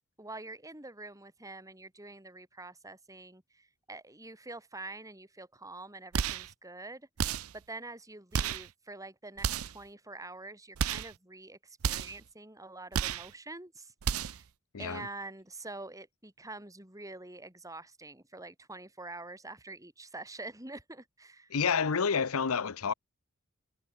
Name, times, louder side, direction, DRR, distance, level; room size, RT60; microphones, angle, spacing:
voice 1, 0.2-14.4 14.8-21.6, right 2 dB, 15° right, 6.9 m, -46 dB
sound 1, 6.1-6.5 7.2-7.6 8.3-8.7 9.4-9.8 10.8-11.1 11.8-12.2 12.9-13.3 14.0-14.4, right 7 dB, 80° right, 0.6 m, -32 dB
voice 2, 14.7-15.1 21.5-22.9, left 6 dB, 80° left, 0.8 m, -29 dB
head